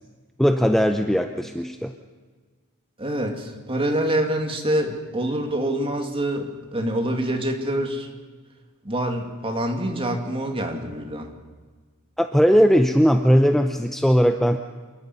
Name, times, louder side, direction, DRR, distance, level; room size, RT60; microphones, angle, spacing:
voice 1, 0.4-1.9 12.2-14.6, equal, ahead, 6 dB, 0.7 m, -18 dB
voice 2, 3.0-8.1 8.8-11.3, right 1 dB, 25° right, 3 dB, 2.4 m, -26 dB
27.5 x 11.5 x 9.6 m, 1.4 s
head